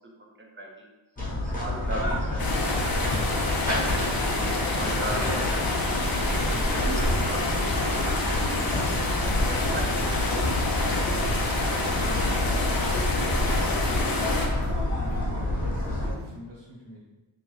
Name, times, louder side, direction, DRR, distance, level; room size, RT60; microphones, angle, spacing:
voice 1, 0.2-0.9 1.4-5.9 6.4-8.8 9.2-12.5 12.8-13.2 13.5-14.1, right 1 dB, 25° right, 0 dB, 0.6 m, -39 dB
sound 1, 1.2-16.1, left 1 dB, 15° left, 1.1 m, -28 dB
sound 2, 2.4-14.5, left 2 dB, 50° left, 0.6 m, -28 dB
sound 3, 3.4-16.4, right 3 dB, 85° right, 0.6 m, -44 dB
voice 2, 14.8-17.0, equal, 60° right, -5 dB, 1.4 m, -45 dB
3.4 x 2.9 x 3.1 m, 1.2 s
wide cardioid pair, 115°, 48 cm